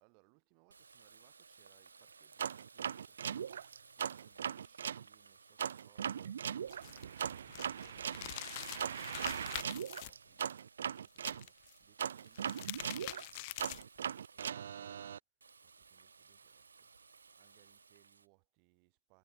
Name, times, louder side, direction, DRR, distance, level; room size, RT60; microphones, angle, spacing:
voice 1, 0.0-15.2 15.6-16.9 17.2-19.2, right 40 dB or more, 20° right, 8.0 m, -70 dB
Water tap faucet, 0.7-14.4 15.4-18.3, right 5 dB, 65° right, 1.5 m, -60 dB
sound 1, 2.4-5.0 5.6-11.4 12.0-15.2, right 8 dB, 45° right, 0.5 m, -39 dB
sound 2, 6.7-10.1 11.2-11.7 12.2-14.0, left 24 dB, 25° left, 0.7 m, -45 dB
hypercardioid pair, 160°, 0 cm